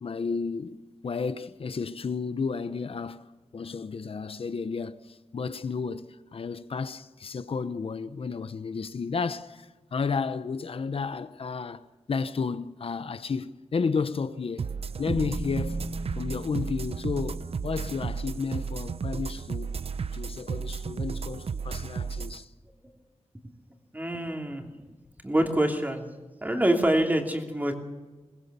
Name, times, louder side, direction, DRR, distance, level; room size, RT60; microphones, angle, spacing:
voice 1, 0.0-14.7 15.0-15.9 16.1-19.8 20.1-22.5, left 5 dB, 60° left, 0.9 m, -32 dB
sound 1, 14.6-22.4, right 5 dB, 60° right, 0.7 m, -33 dB
sound 2, 15.1-19.3, right 1 dB, 30° right, 1.5 m, -39 dB
voice 2, 23.9-24.6 25.2-26.0 26.4-27.8, right 1 dB, 15° right, 2.9 m, -25 dB
22.5 x 20.0 x 6.9 m
wide cardioid pair, 130°, 11 cm